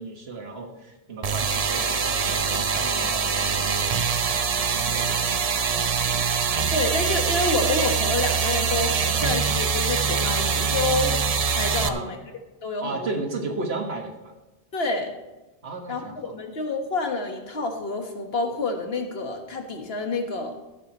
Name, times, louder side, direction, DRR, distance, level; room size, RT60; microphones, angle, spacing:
voice 1, 0.0-3.9 4.7-5.2 11.8-12.1 12.8-14.3 15.6-16.3, right 3 dB, 80° right, 3 dB, 1.8 m, -34 dB
sound 1, 1.2-11.9, right 6 dB, 45° right, 0.6 m, -24 dB
voice 2, 6.7-11.2 11.5-12.2 12.6-13.1 14.7-15.1 15.9-20.6, left 3 dB, 75° left, 4 dB, 1.7 m, -28 dB
13.5 x 12.0 x 3.0 m, 1.1 s
omnidirectional pair, 1.1 m